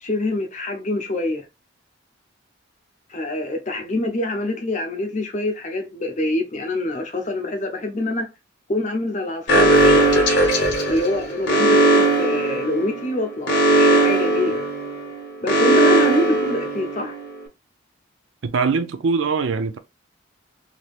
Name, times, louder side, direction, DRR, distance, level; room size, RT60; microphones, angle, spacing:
voice 1, 0.0-1.4 3.1-8.3 8.7-10.2 10.9-14.6 15.4-17.1, left 1 dB, 35° left, 0.7 m, -25 dB
Alarm, 9.5-17.2, right 1 dB, 55° left, 1.0 m, -18 dB
voice 2, 18.4-19.8, right 4 dB, 70° right, 0.4 m, -22 dB
3.3 x 2.9 x 2.4 m
head